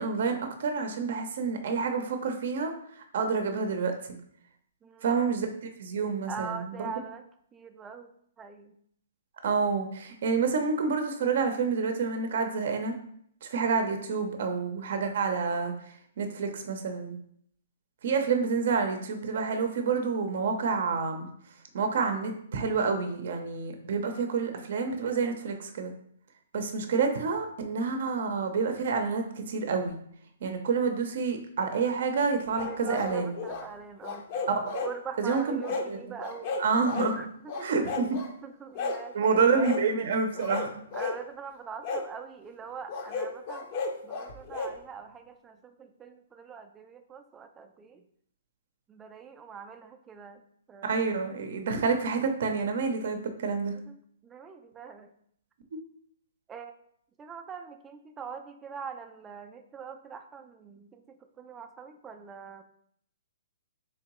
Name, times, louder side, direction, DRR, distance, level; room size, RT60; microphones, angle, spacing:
voice 1, 0.0-4.2 5.0-5.5 5.8-6.9 9.4-12.9 13.4-17.2 18.0-21.3 21.7-25.9 26.5-30.0 30.4-33.3 34.7-34.8 35.2-35.6 35.9-36.0 36.6-37.2 37.6-38.2 39.1-40.7 50.8-53.8, right 5 dB, 60° right, 6 dB, 0.6 m, -28 dB
voice 2, 4.8-5.1 6.3-7.2 7.5-8.8 32.7-34.4 34.8-36.6 37.2-37.7 38.4-40.2 40.9-43.7 44.0-48.1 48.9-50.4 50.7-51.2 53.7-55.1 56.5-56.7 57.2-62.6, right 6 dB, 15° right, 6 dB, 0.4 m, -43 dB
sound 1, 32.5-33.7 34.0-34.9 35.3-35.9 36.2-37.1 37.5-38.3 38.7-39.0 39.6-39.8 40.3-41.2 41.8-42.1 42.9-44.7, left 4 dB, 40° left, 0.5 m, -34 dB
3.6 x 3.2 x 3.0 m, 0.67 s
hypercardioid pair, 150°, 0 cm